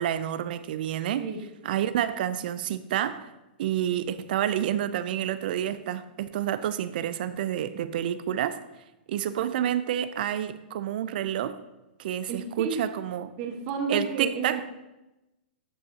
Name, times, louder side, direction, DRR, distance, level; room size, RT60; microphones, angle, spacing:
voice 1, 0.0-1.3 1.6-3.3 3.6-8.6 9.1-11.6 12.0-13.3 13.9-14.6, right 10 dB, 60° right, 0.5 m, -29 dB
voice 2, 12.3-12.7 13.4-14.7, right 4 dB, 45° right, 1.3 m, -31 dB
12.0 x 5.4 x 2.8 m
hypercardioid pair, 130°, 6 cm